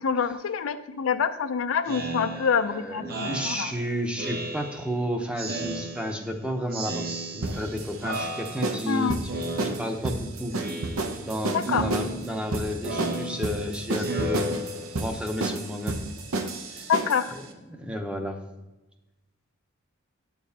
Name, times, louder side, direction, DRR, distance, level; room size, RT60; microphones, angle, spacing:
voice 1, 0.0-3.7 8.9-9.2 11.5-11.9 16.9-17.4, left 6 dB, 75° left, 10 dB, 0.4 m, -26 dB
Speech synthesizer, 1.9-5.0 5.4-6.4 6.7-7.7 8.0-8.9 9.3-10.2 10.5-11.3 11.6-15.2, right 2 dB, 50° right, 0.8 m, -34 dB
voice 2, 2.3-7.1 7.3-9.3 9.6-10.6 11.2-14.5 15.0-16.0 16.7-16.9 17.7-18.4, equal, 5° right, 3 dB, 0.7 m, -32 dB
sound 1, 7.4-17.3, right 2 dB, 85° right, 0.8 m, -31 dB
9.1 x 6.9 x 2.8 m, 1.1 s
head